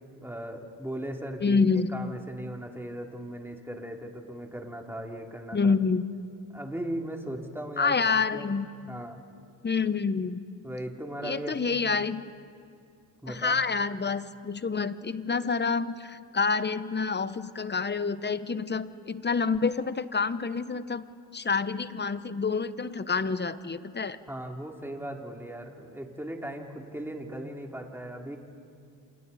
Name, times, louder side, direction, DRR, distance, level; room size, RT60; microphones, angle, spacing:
voice 1, 0.2-1.7 1.9-5.8 6.5-8.5 8.9-9.2 10.6-11.6 13.2-13.6 24.3-28.4, right 1 dB, 5° right, 1 dB, 2.9 m, -38 dB
voice 2, 1.4-1.9 5.5-6.0 7.8-8.7 9.6-10.4 11.2-12.2 13.3-21.0 21.3-24.2, left 4 dB, 25° left, 14 dB, 0.9 m, -27 dB
28.0 x 27.0 x 4.2 m, 2.3 s
cardioid pair, 65°, 41 cm